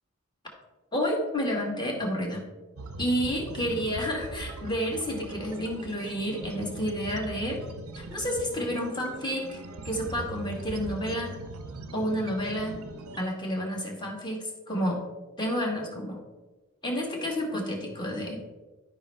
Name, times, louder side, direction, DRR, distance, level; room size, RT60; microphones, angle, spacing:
voice 1, 0.9-2.4 3.0-7.6 7.9-9.6 9.8-11.4 11.9-12.8 13.2-15.0 15.4-16.2 16.8-18.4, equal, 20° left, 0 dB, 1.6 m, -30 dB
sound 1, 2.8-13.2, right 2 dB, 90° right, 0.7 m, -41 dB
11.5 x 5.3 x 3.4 m, 1.2 s
head